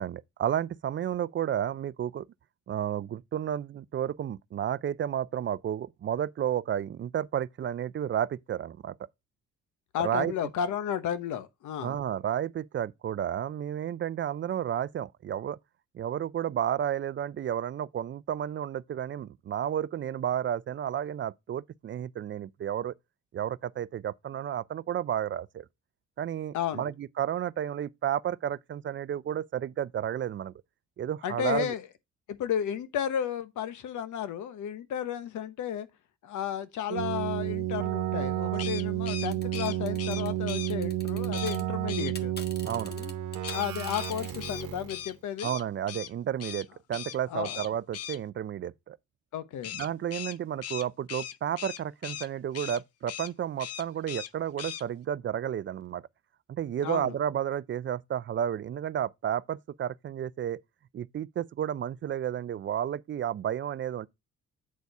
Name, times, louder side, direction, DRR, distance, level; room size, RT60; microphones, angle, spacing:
voice 1, 0.0-2.2 2.7-8.9 10.0-10.3 11.8-15.6 15.9-22.9 23.3-25.7 26.2-30.5 31.0-31.7 42.6-42.9 45.4-49.0 49.7-56.0 56.5-60.6 60.9-64.1, right 10 dB, 40° right, 0.4 m, -32 dB
voice 2, 9.9-12.0 26.5-26.9 31.2-31.8 32.3-35.9 36.2-42.3 42.9-43.1 43.5-45.5 47.3-47.6 49.3-49.7 56.8-57.1, left 9 dB, 75° left, 1.0 m, -33 dB
Keyboard (musical), 36.9-45.0, right 13 dB, 85° right, 1.0 m, -31 dB
sound 1, 38.5-40.7 41.3-41.6 41.9-42.1 43.4-46.1 46.4-46.7 46.9-47.2 47.4-48.2 49.6-52.3 52.5-52.8 53.1-53.3 53.6-54.3 54.6-54.8, left 10 dB, 55° left, 0.6 m, -39 dB
sound 2, 39.3-41.6 41.9-44.4, left 3 dB, 35° left, 1.3 m, -44 dB
8.5 x 4.0 x 4.6 m
cardioid pair, 90°, 30 cm